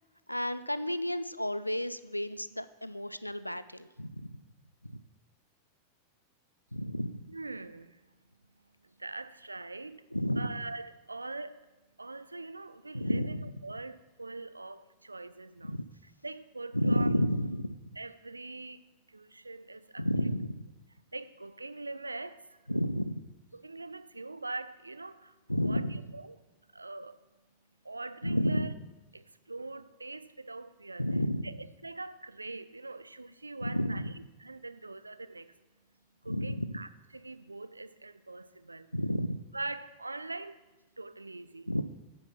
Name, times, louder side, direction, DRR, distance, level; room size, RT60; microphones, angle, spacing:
voice 1, 0.3-4.3 4.8-5.0 6.7-7.2 10.1-10.6 12.9-13.5 15.6-15.8 16.7-17.8 20.0-20.6 22.7-23.2 25.5-26.0 28.2-28.7 31.0-31.5 33.6-34.1 36.3-36.7 38.9-39.4 41.7-41.8, equal, 85° left, 14 dB, 0.3 m, -31 dB
voice 2, 7.3-8.0 9.0-10.0 10.4-11.7 12.0-17.1 18.0-18.8 19.1-20.1 21.1-22.6 23.5-25.3 25.6-26.4 26.7-27.2 27.8-28.7 29.1-31.0 31.4-35.5 36.2-38.9 39.5-40.6 41.0-41.7, right 3 dB, 80° right, 13 dB, 0.4 m, -43 dB
9.1 x 5.2 x 5.7 m, 1.2 s
figure-of-eight pair, 90°, 0 cm